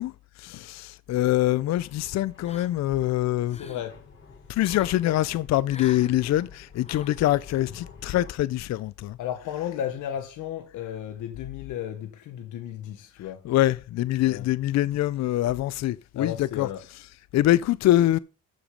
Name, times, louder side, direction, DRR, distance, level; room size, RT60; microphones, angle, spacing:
voice 1, 0.0-3.6 4.5-9.7 13.4-17.1 17.3-18.2, left 14 dB, 60° left, 0.5 m, -24 dB
sound 1, 1.1-8.3, left 4 dB, 40° left, 4.2 m, -50 dB
sound 2, 2.4-3.0 3.3-3.9 4.6-5.0 5.7-6.1 6.8-7.2, left 4 dB, 20° left, 1.0 m, -45 dB
voice 2, 3.6-4.0 9.2-13.5 14.3-14.5 16.2-16.8, left 10 dB, 85° left, 1.2 m, -34 dB
12.5 x 5.0 x 5.1 m
cardioid pair, 90°, 30 cm